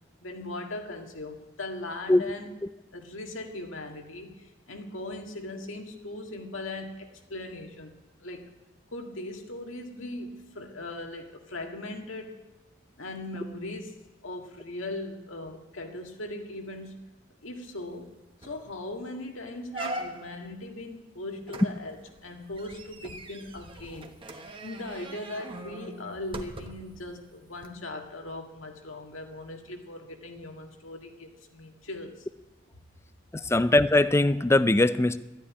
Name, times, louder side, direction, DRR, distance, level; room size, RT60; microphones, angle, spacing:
voice 1, 0.2-2.5 2.9-7.9 8.2-8.5 8.9-12.4 13.0-17.0 17.4-18.1 18.4-24.1 24.6-32.3, left 2 dB, 85° left, 3 dB, 1.9 m, -39 dB
sound 1, 18.0-18.1 18.4-18.7 19.1-19.2 19.7-20.5 21.5-27.0 27.6-27.7, right 2 dB, 25° right, 1.1 m, -41 dB
voice 2, 33.5-35.2, left 2 dB, 15° left, 14 dB, 0.4 m, -21 dB
12.5 x 10.0 x 9.7 m, 1.1 s
head